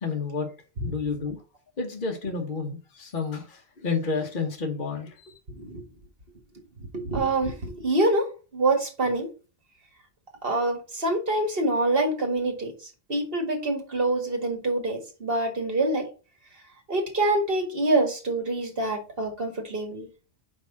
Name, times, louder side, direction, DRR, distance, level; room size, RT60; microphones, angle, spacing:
voice 1, 0.0-0.5 0.8-1.4 1.8-5.4, left 4 dB, 55° left, 1.4 m, -30 dB
voice 2, 5.5-5.8 6.9-9.3 10.4-16.1 16.9-20.1, right 2 dB, 65° right, 2.0 m, -26 dB
5.2 x 4.7 x 5.8 m
omnidirectional pair, 1.1 m